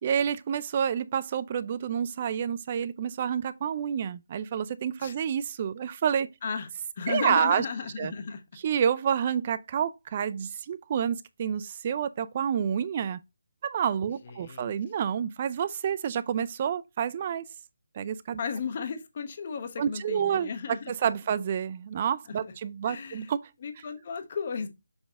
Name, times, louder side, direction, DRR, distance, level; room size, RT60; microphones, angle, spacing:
voice 1, 0.0-6.3 7.1-7.7 8.0-8.1 8.6-13.2 13.6-17.5 18.0-18.4 19.8-23.5, right 8 dB, 35° right, 0.4 m, -29 dB
voice 2, 7.0-8.4 14.2-14.7 18.4-20.9 22.9-23.3 23.6-24.7, left 6 dB, 40° left, 1.1 m, -34 dB
6.9 x 4.0 x 3.6 m
figure-of-eight pair, 160°, 0 cm